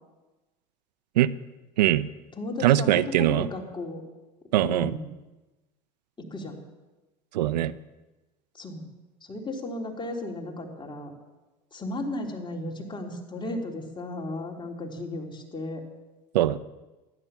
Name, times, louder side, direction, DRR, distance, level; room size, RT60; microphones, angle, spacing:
voice 1, 1.8-2.1 2.6-3.5 4.5-4.9 7.3-7.7 16.3-16.6, right 13 dB, 85° right, 15 dB, 0.6 m, -21 dB
voice 2, 2.4-4.0 4.6-5.1 6.2-6.6 8.5-8.9 9.2-11.1 11.7-15.8, left 2 dB, 25° left, 0 dB, 3.5 m, -35 dB
14.0 x 11.0 x 7.1 m, 1.1 s
hypercardioid pair, 80°, 21 cm